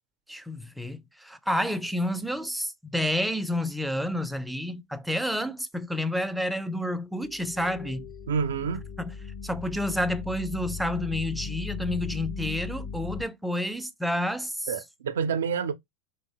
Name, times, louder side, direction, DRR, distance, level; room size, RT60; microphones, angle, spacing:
voice 1, 0.3-8.1 9.0-9.1 9.4-14.7, left 1 dB, ahead, 0.3 m, -30 dB
sound 1, 7.2-13.2, left 6 dB, 55° left, 0.5 m, -37 dB
voice 2, 8.3-8.8 14.7-15.7, right 6 dB, 90° right, 0.4 m, -28 dB
2.8 x 2.1 x 2.6 m
supercardioid pair, 120°, 0 cm